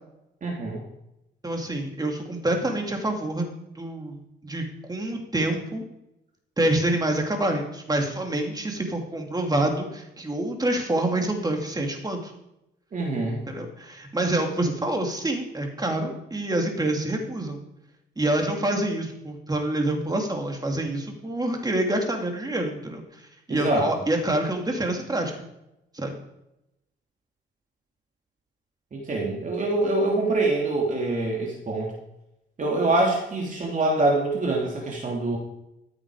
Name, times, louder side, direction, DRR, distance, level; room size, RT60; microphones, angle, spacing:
voice 1, 0.4-0.8 12.9-13.4 23.5-23.9 28.9-31.9 32.6-35.4, right 2 dB, 40° right, -2 dB, 2.9 m, -25 dB
voice 2, 1.4-3.5 3.7-5.8 6.6-12.3 13.5-17.6 18.2-23.0 23.5-25.4 25.9-26.1, right 1 dB, 20° right, 2 dB, 2.8 m, -27 dB
14.0 x 8.7 x 5.0 m, 0.87 s
cardioid pair, 90°, 20 cm